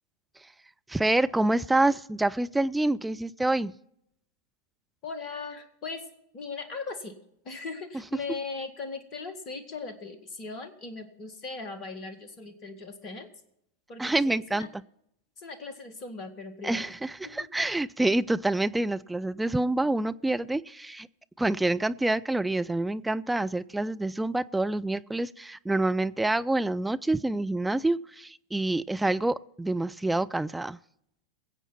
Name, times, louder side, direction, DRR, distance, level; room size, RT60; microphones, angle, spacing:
voice 1, 0.9-3.7 14.0-14.7 16.6-21.1 21.4-30.8, right 2 dB, 5° right, 12 dB, 0.4 m, -27 dB
voice 2, 5.0-6.0 6.3-7.2 7.4-13.3 13.9-14.7 15.4-16.9 17.4-17.5, left 4 dB, 35° left, 9 dB, 1.9 m, -39 dB
21.5 x 8.2 x 4.2 m, 0.76 s
figure-of-eight pair, 90°, 0 cm